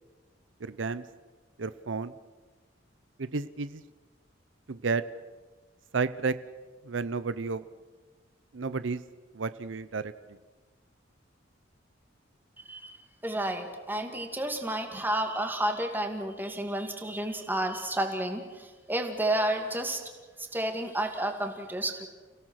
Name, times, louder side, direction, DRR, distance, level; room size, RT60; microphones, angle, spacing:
voice 1, 0.6-1.0 1.6-2.1 3.2-3.8 4.7-5.0 5.9-6.4 6.8-7.6 8.5-9.0 9.3-10.1, right 4 dB, 80° right, 14 dB, 0.7 m, -31 dB
voice 2, 12.6-20.0 20.4-22.1, right 1 dB, 10° right, 4 dB, 2.4 m, -31 dB
30.0 x 17.0 x 6.5 m, 1.4 s
head